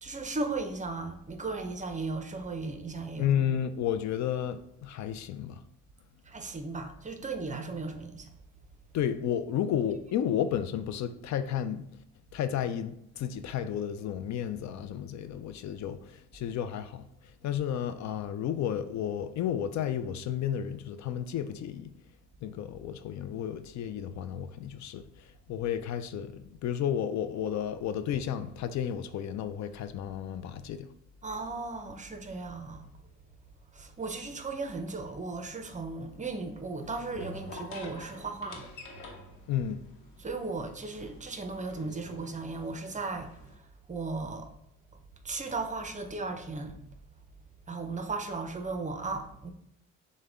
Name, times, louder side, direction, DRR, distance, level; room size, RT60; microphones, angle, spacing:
voice 1, 0.0-3.3 6.3-8.3 31.2-32.9 33.7-38.7 40.2-44.5 44.9-46.8 47.7-49.5, right 3 dB, 25° right, 0.6 m, -36 dB
voice 2, 3.2-5.6 8.9-11.9 12.3-17.1 17.4-21.9 22.4-25.0 25.5-30.9 39.5-39.8, left 9 dB, 65° left, 0.4 m, -32 dB
sound 1, 35.0-43.5, left 1 dB, 90° left, 0.9 m, -49 dB
6.6 x 2.2 x 3.6 m
cardioid pair, 90°, 30 cm